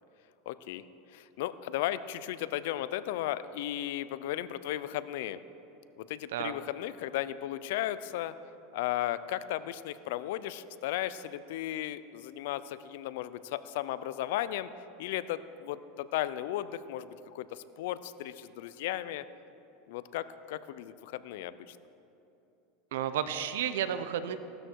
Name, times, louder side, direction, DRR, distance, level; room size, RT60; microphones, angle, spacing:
voice 1, 0.5-0.8 1.1-5.4 6.0-8.3 8.7-14.7 15.0-19.2 19.9-21.8, left 13 dB, 75° left, 15 dB, 0.6 m, -35 dB
voice 2, 22.9-24.4, right 9 dB, 85° right, 11 dB, 0.8 m, -32 dB
17.0 x 13.0 x 4.7 m, 2.9 s
supercardioid pair, 130°, 0 cm